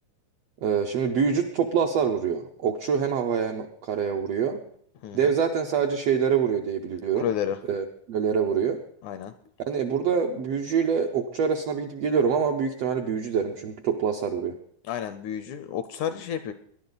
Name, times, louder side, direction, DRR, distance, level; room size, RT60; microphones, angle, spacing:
voice 1, 0.6-4.6 5.1-7.3 7.7-8.8 9.6-14.5, right 6 dB, 75° right, 3 dB, 1.4 m, -25 dB
voice 2, 7.1-7.6 9.0-9.3 14.9-16.5, left 9 dB, 80° left, 11 dB, 1.8 m, -30 dB
20.5 x 11.0 x 4.0 m, 0.64 s
omnidirectional pair, 3.9 m